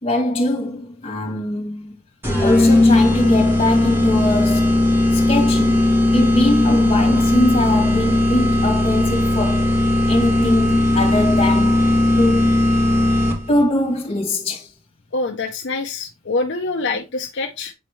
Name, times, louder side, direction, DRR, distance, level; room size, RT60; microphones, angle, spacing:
voice 1, 0.0-1.9 2.4-4.7 5.1-5.9 6.1-9.7 10.1-11.9 12.2-12.5 13.5-14.7, left 1 dB, 30° left, 2.0 m, -22 dB
sound 1, 2.2-13.6, left 1 dB, 10° right, 2.1 m, -17 dB
voice 2, 15.1-17.7, left 3 dB, 55° left, 0.6 m, -25 dB
8.2 x 4.3 x 3.1 m
head